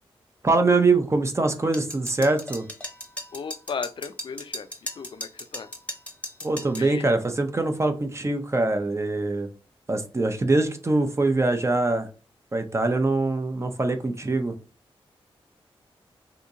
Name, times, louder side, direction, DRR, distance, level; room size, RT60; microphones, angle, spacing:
voice 1, 0.4-2.7 6.4-9.5 9.9-12.1 12.5-14.5, right 2 dB, 30° right, 7 dB, 0.6 m, -23 dB
sound 1, 1.7-6.9, left 1 dB, 15° left, 0.8 m, -36 dB
voice 2, 3.3-4.7 5.0-5.7 6.8-7.1, left 6 dB, 55° left, 10 dB, 0.4 m, -35 dB
2.8 x 2.7 x 3.6 m, 0.36 s
cardioid pair, 60°, 10 cm